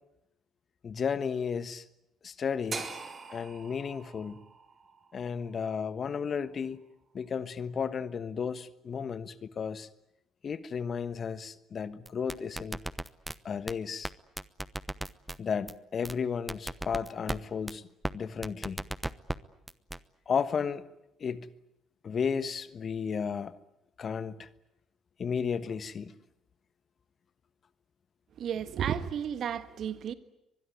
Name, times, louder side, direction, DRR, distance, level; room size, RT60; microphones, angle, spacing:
voice 1, 0.8-1.8 2.2-2.9 3.3-4.4 5.1-6.8 7.1-9.9 10.4-12.8 13.4-14.1 15.4-17.8 18.1-18.8 20.3-20.8 21.2-21.5 22.0-23.5 24.0-24.5 25.2-26.1, left 6 dB, 45° left, 1.3 m, -33 dB
sound 1, 2.7-6.8, right 4 dB, 35° right, 4.0 m, -43 dB
sound 2, 12.1-13.4 13.7-13.8 14.0-14.1 14.4-15.4 15.7-15.8 16.1-16.2 16.5-17.4 17.7-17.8 18.0-18.1 18.4-19.4 19.7-20.0, right 1 dB, 10° right, 1.0 m, -34 dB
voice 2, 28.4-30.1, right 8 dB, 55° right, 1.5 m, -33 dB
24.0 x 21.0 x 9.5 m
hypercardioid pair, 50°, 0 cm